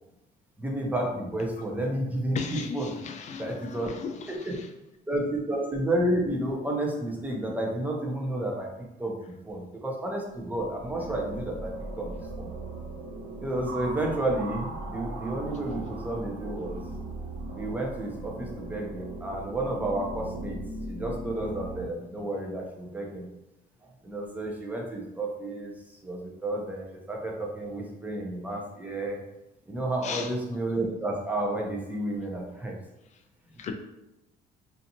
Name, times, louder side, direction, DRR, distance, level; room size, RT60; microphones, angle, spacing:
voice 1, 0.6-2.9 3.4-3.9 4.3-4.5 5.1-8.7 9.0-9.2 9.4-12.5 13.4-16.8 17.5-20.6 20.9-23.3 24.0-29.2 29.7-32.8, right 1 dB, 10° right, 0.6 m, -31 dB
voice 2, 2.3-4.7 30.0-30.4 33.6-33.7, left 6 dB, 45° left, 0.4 m, -37 dB
sound 1, 10.3-21.8, right 2 dB, 60° right, 0.8 m, -38 dB
2.6 x 2.4 x 2.7 m
cardioid pair, 110°, 17 cm